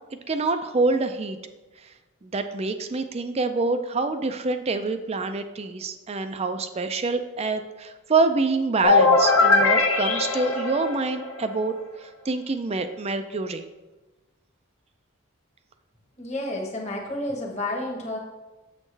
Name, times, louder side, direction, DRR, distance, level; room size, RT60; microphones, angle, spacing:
voice 1, 0.3-1.4 2.2-11.7 12.0-13.6, right 3 dB, 30° right, 8 dB, 0.4 m, -26 dB
sound 1, 8.8-11.6, left 3 dB, 80° left, 0.8 m, -20 dB
voice 2, 16.2-18.2, left 1 dB, 30° left, -1 dB, 1.1 m, -30 dB
7.2 x 6.4 x 3.3 m, 1.1 s
head